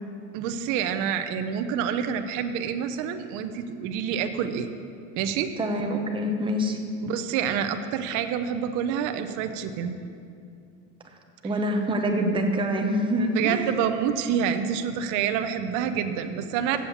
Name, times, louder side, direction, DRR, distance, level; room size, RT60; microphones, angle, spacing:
voice 1, 0.3-4.7 5.2-5.5 7.0-9.9 13.3-16.8, right 8 dB, 55° right, 8 dB, 0.7 m, -27 dB
voice 2, 5.6-6.8 11.4-13.7, equal, 15° right, 3 dB, 0.8 m, -25 dB
7.6 x 7.2 x 8.3 m, 2.5 s
cardioid pair, 160°, 37 cm